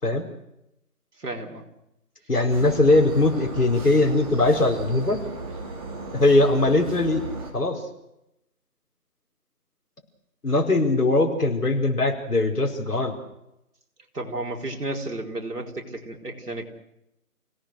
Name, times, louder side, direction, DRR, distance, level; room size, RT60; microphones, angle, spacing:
voice 1, 1.2-1.6 14.1-16.7, right 2 dB, 75° right, 1 dB, 4.5 m, -32 dB
voice 2, 2.3-5.2 6.1-7.2 7.5-7.8 10.4-13.2, left 2 dB, 75° left, 1 dB, 5.2 m, -20 dB
sound 1, 2.5-7.5, right 2 dB, 25° right, 3.5 m, -35 dB
29.5 x 18.0 x 6.5 m, 0.86 s
figure-of-eight pair, 165°, 46 cm